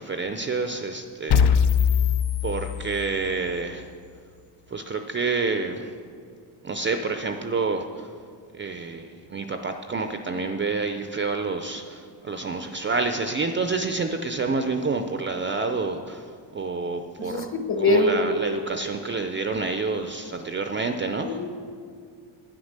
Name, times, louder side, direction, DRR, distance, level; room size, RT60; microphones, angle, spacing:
voice 1, 0.0-1.6 2.4-3.9 4.7-5.9 6.6-8.1 8.6-17.5 17.8-21.4, right 4 dB, 25° right, 7 dB, 0.5 m, -28 dB
sound 1, 1.3-3.3, left 7 dB, 55° left, 0.6 m, -22 dB
voice 2, 17.2-18.4 21.2-21.6, left 2 dB, 25° left, 7 dB, 1.0 m, -23 dB
9.8 x 9.7 x 6.5 m, 2.2 s
cardioid pair, 145°, 48 cm